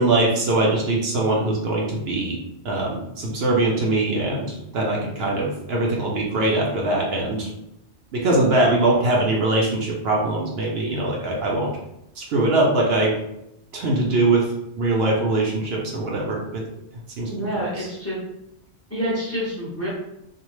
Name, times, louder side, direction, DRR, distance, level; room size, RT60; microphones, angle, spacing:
voice 1, 0.0-2.4 2.6-7.5 8.1-11.7 12.2-13.1 13.7-14.4 14.8-16.6 17.2-17.9, right 2 dB, 70° right, -2 dB, 0.8 m, -22 dB
voice 2, 17.3-18.2 18.9-19.9, equal, 15° left, -6 dB, 0.6 m, -27 dB
2.6 x 2.0 x 3.0 m, 0.82 s
omnidirectional pair, 1.2 m